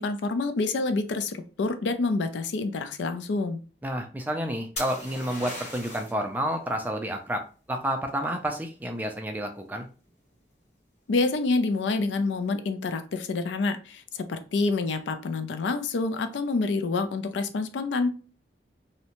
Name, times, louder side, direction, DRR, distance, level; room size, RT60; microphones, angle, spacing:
voice 1, 0.0-3.6 11.1-18.1, left 3 dB, 85° left, 9 dB, 0.4 m, -27 dB
voice 2, 3.8-7.4 7.7-9.9, equal, 10° right, 4 dB, 0.3 m, -30 dB
sound 1, 4.8-6.2 9.9-10.3, left 2 dB, 40° left, 1.1 m, -37 dB
2.6 x 2.1 x 2.8 m, 0.37 s
head